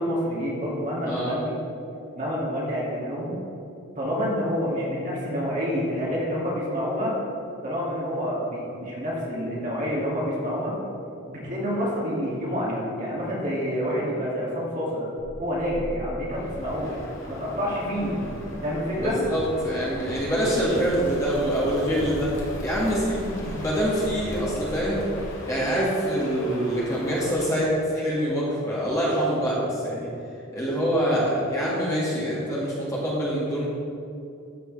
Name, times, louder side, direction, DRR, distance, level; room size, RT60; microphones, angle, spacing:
voice 1, 0.0-1.5 2.1-3.3 4.0-7.1 7.6-10.7 11.3-15.1 15.4-17.0 17.3-18.1 18.6-19.2, equal, 40° right, -6 dB, 2.3 m, -28 dB
sound 1, 15.2-25.3, equal, 5° right, 2.0 m, -39 dB
Crow, 16.3-27.7, left 1 dB, 60° left, 1.9 m, -41 dB
voice 2, 19.0-22.3 22.6-25.0 25.5-30.1 30.5-33.7, equal, 15° left, -7 dB, 1.9 m, -25 dB
13.5 x 6.4 x 3.4 m, 2.7 s
head